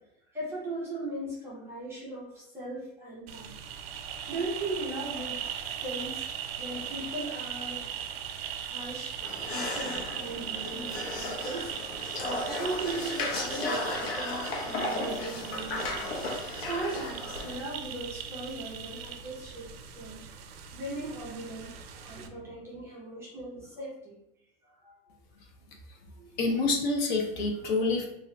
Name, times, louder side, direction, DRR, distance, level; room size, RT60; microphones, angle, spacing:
voice 1, 0.3-3.5 4.3-5.4 5.8-6.2 6.6-8.0 8.6-9.2 9.5-11.7 12.2-16.0 16.7-24.2 24.6-25.0 26.1-26.3, right 2 dB, 10° right, -8 dB, 0.4 m, -38 dB
sound 1, 3.3-22.3, right 8 dB, 80° right, 0.5 m, -39 dB
sound 2, 9.2-17.6, left 2 dB, 90° left, 0.9 m, -35 dB
voice 2, 26.4-28.1, left 3 dB, 50° left, 2 dB, 0.6 m, -28 dB
2.8 x 2.4 x 3.1 m, 0.82 s
supercardioid pair, 170°, 30 cm